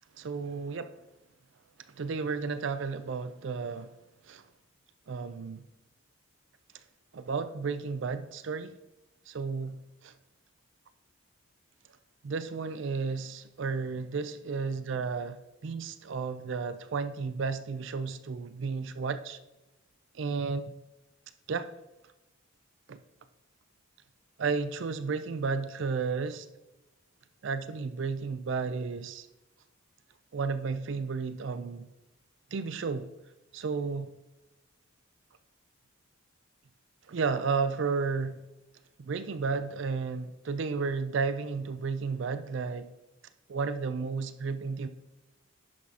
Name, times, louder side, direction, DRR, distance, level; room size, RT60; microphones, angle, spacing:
voice 1, 0.2-0.9 2.0-3.9 4.3-4.4 5.1-5.7 7.1-8.7 9.3-9.8 10.0-10.1 12.2-19.4 20.1-20.8 21.5-21.7 22.9-23.0 24.4-26.5 27.4-29.3 30.3-31.9 32.5-33.1 33.5-34.1 37.1-38.4 39.0-42.9 43.5-44.9, right 4 dB, 55° right, 12 dB, 0.4 m, -32 dB
10.5 x 6.0 x 2.8 m, 0.98 s
head